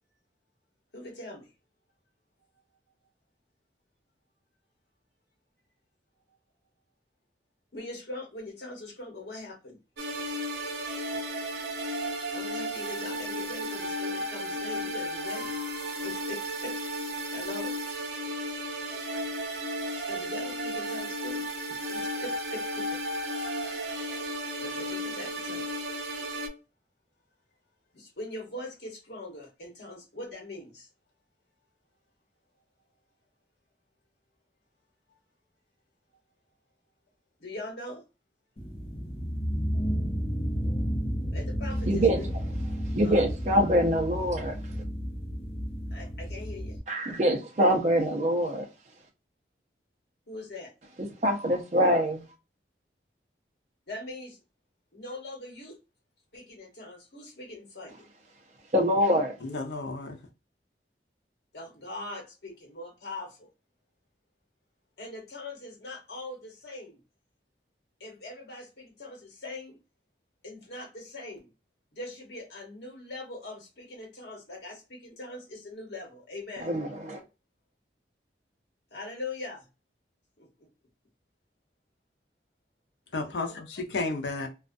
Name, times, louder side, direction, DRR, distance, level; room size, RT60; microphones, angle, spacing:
voice 1, 0.9-1.5 7.7-9.8 12.3-15.5 16.0-16.8 17.0-17.8 20.0-23.0 24.6-25.7 27.9-30.9 37.4-38.0 41.3-42.3 43.0-43.2 45.9-46.8 50.3-50.7 53.9-54.4 54.9-55.8 56.3-58.0 61.5-63.5 65.0-67.0 68.0-69.8 70.4-71.5 71.9-76.7 78.9-79.7 80.4-80.5, left 2 dB, 70° left, 1.2 m, -41 dB
sound 1, 10.0-26.5, equal, 85° right, 0.7 m, -34 dB
sound 2, 38.6-46.8, equal, 35° left, 0.6 m, -32 dB
voice 2, 41.9-42.2 42.9-44.6 46.9-48.7 51.2-52.2 58.7-59.4 76.6-77.2, equal, 40° right, 0.6 m, -24 dB
voice 3, 59.4-60.2 83.1-84.5, left 3 dB, 90° left, 0.6 m, -32 dB
2.4 x 2.3 x 2.5 m
head